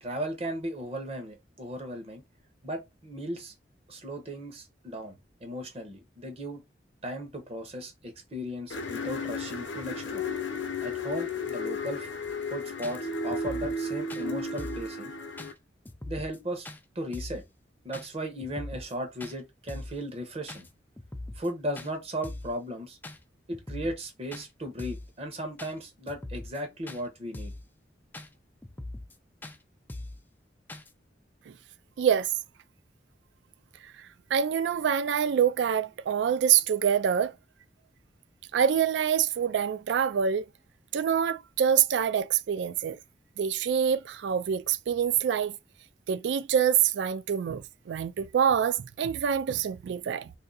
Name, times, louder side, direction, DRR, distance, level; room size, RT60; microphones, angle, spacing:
voice 1, 0.0-2.2 2.6-3.5 3.9-6.6 7.0-10.3 10.8-12.1 12.5-15.1 16.1-16.7 16.9-17.4 17.8-20.6 21.3-23.0 23.5-27.5, equal, 35° right, 0.9 m, -36 dB
sound 1, 8.7-15.5, left 3 dB, 80° left, 0.6 m, -34 dB
sound 2, 12.3-12.4 12.8-13.0 13.3-13.8 14.1-14.2 14.6-14.9 15.4-15.5 15.9-16.4 16.6-16.8 17.1-17.4 17.9-18.1 18.4-18.9 19.2-19.4 19.7-20.0 20.5-20.7 21.0-21.5 21.8-21.9 22.2-22.5 23.0-23.2 23.5-24.0 24.3-24.5 24.8-25.1 25.6-25.7 26.1-26.6 26.9-27.0 27.3-27.7 28.1-28.3 28.6-29.2 29.4-29.6 29.9-30.2 30.7-30.9, left 1 dB, 10° left, 0.3 m, -41 dB
voice 2, 32.0-32.3 34.3-37.3 38.5-40.4 40.9-43.0 43.4-45.6 46.1-50.3, right 8 dB, 75° right, 0.3 m, -26 dB
2.6 x 2.6 x 3.9 m
head